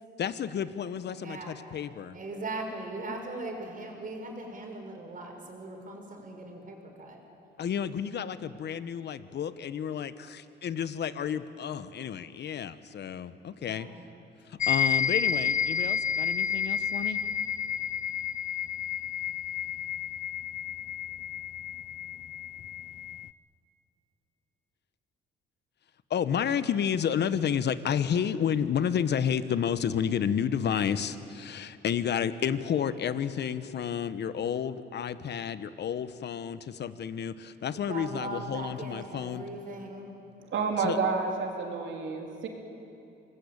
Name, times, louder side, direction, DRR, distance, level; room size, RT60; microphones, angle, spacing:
voice 1, 0.2-2.2 7.6-13.9 14.5-17.2 26.1-39.4 40.8-41.0, left 8 dB, 60° left, 13 dB, 1.1 m, -31 dB
voice 2, 1.1-1.6 2.1-7.2 13.6-13.9 37.9-40.2, right 2 dB, 45° right, 2 dB, 5.8 m, -39 dB
sound 1, 14.6-23.3, left 8 dB, 40° left, 0.6 m, -30 dB
voice 3, 40.4-42.5, right 4 dB, 75° right, 2 dB, 3.7 m, -30 dB
26.0 x 20.0 x 8.7 m, 2.7 s
cardioid pair, 90°, 20 cm